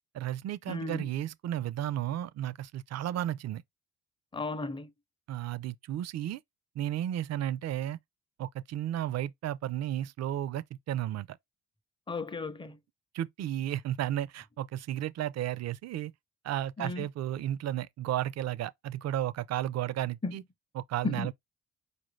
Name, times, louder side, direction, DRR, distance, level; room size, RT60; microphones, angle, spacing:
voice 1, 0.1-3.6 5.3-6.4 6.8-8.0 8.4-11.4 13.1-16.1 16.4-20.4 20.8-21.3, right 12 dB, 60° right, 0.5 m, -33 dB
voice 2, 0.7-1.1 4.3-4.9 12.1-12.8 16.8-17.1 20.2-20.3 21.0-21.3, left 3 dB, 15° left, 0.6 m, -35 dB
4.5 x 2.6 x 3.1 m
cardioid pair, 90°, 30 cm